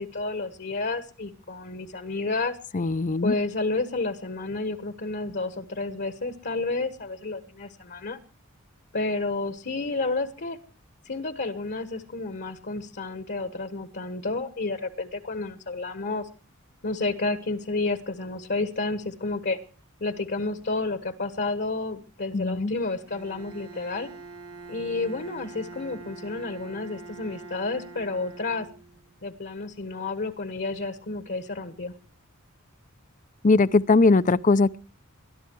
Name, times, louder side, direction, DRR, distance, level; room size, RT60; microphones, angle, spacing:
voice 1, 0.0-2.6 3.2-8.2 8.9-10.6 11.0-16.3 16.8-19.6 20.0-24.1 24.7-28.7 29.2-31.9, left 3 dB, 55° left, 1.4 m, -30 dB
voice 2, 2.7-3.3 22.3-22.7 33.4-34.8, left 3 dB, 35° left, 0.6 m, -20 dB
Bowed string instrument, 23.1-29.2, right 4 dB, 90° right, 1.5 m, -44 dB
21.0 x 12.0 x 4.6 m
head